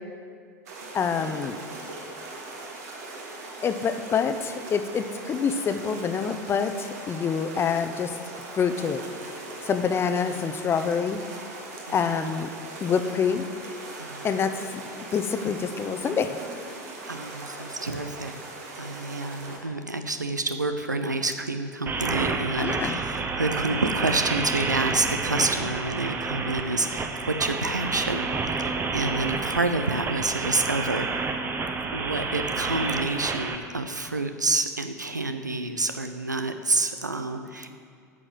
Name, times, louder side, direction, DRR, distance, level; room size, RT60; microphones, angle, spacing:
sound 1, 0.7-19.6, right 2 dB, 60° right, 1.8 m, -40 dB
voice 1, 0.9-1.6 3.6-8.1 8.6-9.0 9.6-11.2 11.9-12.5 12.8-13.5 14.2-14.8 15.1-16.4 22.6-23.0, left 6 dB, 25° left, 9 dB, 0.7 m, -26 dB
voice 2, 11.9-12.3 14.0-14.4 17.1-18.3 18.8-31.1 31.9-37.7, right 2 dB, 90° right, 8 dB, 0.5 m, -28 dB
sound 2, 21.9-33.6, right 4 dB, 20° right, 0.9 m, -29 dB
8.8 x 6.2 x 7.8 m, 2.2 s
figure-of-eight pair, 80°, 9 cm